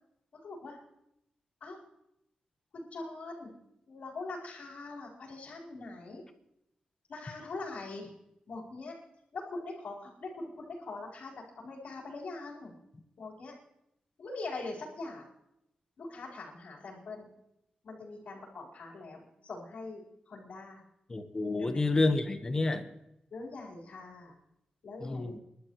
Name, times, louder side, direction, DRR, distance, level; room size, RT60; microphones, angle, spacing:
voice 1, 0.4-0.8 1.6-1.8 2.7-3.6 3.9-6.2 7.1-8.1 8.5-9.0 9.3-12.7 13.2-13.5 14.2-15.3 16.0-17.3 17.8-20.8 21.6-21.8 23.3-24.4 24.8-25.4, left 3 dB, 65° left, -4 dB, 4.2 m, -42 dB
voice 2, 21.1-22.9 25.0-25.4, left 2 dB, 25° left, 7 dB, 1.3 m, -29 dB
29.5 x 12.0 x 3.2 m, 0.83 s
wide cardioid pair, 150°, 3 cm